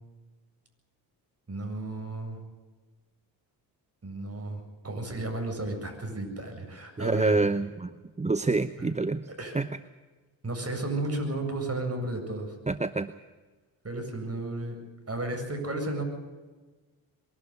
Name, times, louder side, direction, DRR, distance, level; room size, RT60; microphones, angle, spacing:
voice 1, 1.5-2.4 4.0-7.4 8.8-8.9 9.4-9.5 10.4-12.5 13.8-14.8 15.1-16.0, right 2 dB, 30° right, 4 dB, 7.9 m, -33 dB
voice 2, 7.0-9.3 9.5-9.7 12.7-13.1, right 3 dB, 15° right, 13 dB, 0.8 m, -27 dB
23.5 x 12.5 x 9.7 m, 1.3 s
hypercardioid pair, 50°, 49 cm